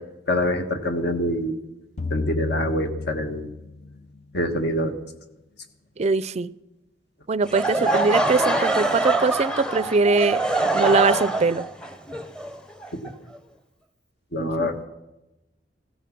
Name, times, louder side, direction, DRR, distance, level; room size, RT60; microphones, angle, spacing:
voice 1, 0.3-1.6 2.1-3.5 4.3-4.9 12.9-13.0 14.3-14.8, left 1 dB, 65° left, 7 dB, 1.5 m, -25 dB
sound 1, 2.0-4.4, left 3 dB, 40° left, 0.5 m, -32 dB
voice 2, 6.0-6.5 7.3-10.4 10.7-11.6 14.4-14.7, right 3 dB, 35° right, 17 dB, 0.4 m, -22 dB
Laughter / Crowd, 7.4-13.4, right 2 dB, 5° left, 0.8 m, -24 dB
16.5 x 13.0 x 6.0 m, 0.97 s
head